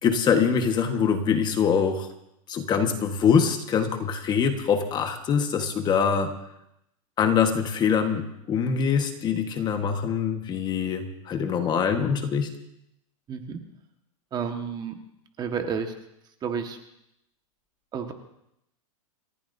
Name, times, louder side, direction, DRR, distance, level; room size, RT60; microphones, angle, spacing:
voice 1, 0.0-2.1 2.5-6.3 7.2-12.5, left 6 dB, 25° left, 6 dB, 1.4 m, -24 dB
voice 2, 13.3-13.6 14.3-15.0 15.4-15.9 16.4-16.8 17.9-18.1, right 6 dB, 25° right, 5 dB, 1.5 m, -30 dB
28.5 x 14.5 x 2.7 m, 0.81 s
supercardioid pair, 140°, 18 cm